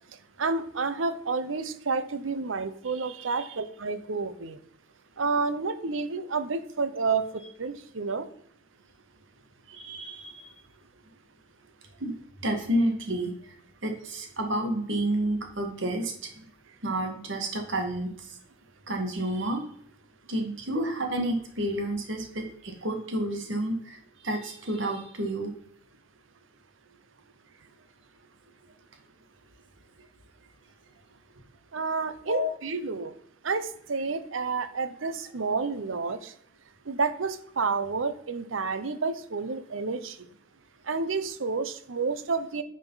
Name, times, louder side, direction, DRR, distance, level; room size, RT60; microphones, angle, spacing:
voice 1, 0.4-4.6 5.2-7.2 7.6-8.3 31.7-33.1 33.4-36.3 36.9-40.3 40.9-42.6, right 4 dB, 85° right, 12 dB, 0.8 m, -30 dB
voice 2, 9.7-10.6 12.0-12.1 12.4-13.5 13.8-16.5 16.8-18.4 18.9-19.6 20.3-25.5 32.3-32.5, right 1 dB, 70° right, 3 dB, 1.9 m, -30 dB
9.8 x 5.0 x 4.1 m, 0.67 s
head